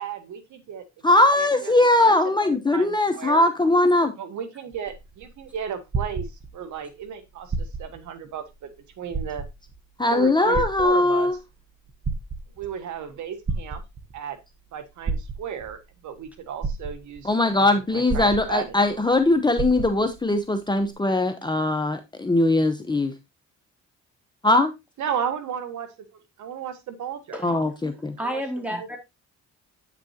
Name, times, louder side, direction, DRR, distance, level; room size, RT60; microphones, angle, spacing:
voice 1, 0.0-0.8 1.1-1.7 2.0-2.1 2.5-3.4 4.2-6.3 6.5-8.7 9.0-9.4 10.1-11.3 12.6-13.8 14.1-14.4 14.7-18.8 25.0-25.9 26.1-27.4 28.2-28.4 28.8-28.9, right 8 dB, 75° right, 1.3 m, -34 dB
voice 2, 1.0-4.1 10.0-11.4 17.2-23.1 24.4-24.7 27.4-28.2, left 2 dB, 15° left, 0.9 m, -20 dB
Heartbeat Steady, 4.7-6.8 7.4-8.1 8.5-8.6 9.1-9.8 10.5-11.4 11.9-12.7 13.5-14.2 15.0-15.7 16.3-16.4 16.6-17.3 18.1-18.9 19.2-19.3 19.6-20.2 20.9-21.0, right 4 dB, 35° right, 1.1 m, -30 dB
voice 3, 28.2-29.0, equal, 5° right, 2.7 m, -30 dB
8.8 x 6.1 x 2.8 m
cardioid pair, 90°, 30 cm